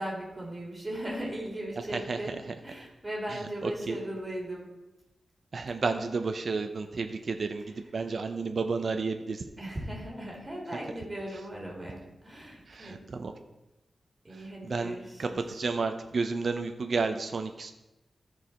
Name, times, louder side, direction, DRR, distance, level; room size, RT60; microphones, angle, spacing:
voice 1, 0.0-2.3 2.6-4.7 9.6-13.0 14.2-15.4, right 1 dB, 15° right, -2 dB, 2.9 m, -38 dB
voice 2, 3.3-4.0 5.5-9.4 12.7-13.3 14.3-17.7, right 4 dB, 50° right, 6 dB, 0.6 m, -32 dB
13.5 x 4.8 x 4.3 m, 0.99 s
wide cardioid pair, 125°, 0 cm